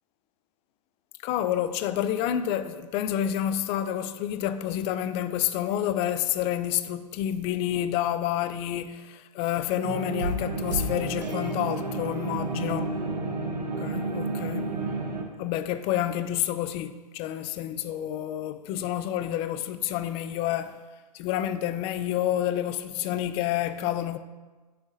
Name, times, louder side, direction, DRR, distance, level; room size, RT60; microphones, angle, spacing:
voice 1, 1.2-12.9 13.8-14.7 15.4-20.8 21.1-24.2, left 11 dB, 30° left, 0.4 m, -29 dB
sound 1, 9.8-15.2, right 2 dB, 85° right, 1.3 m, -30 dB
10.5 x 6.4 x 2.7 m
hypercardioid pair, 115°, 21 cm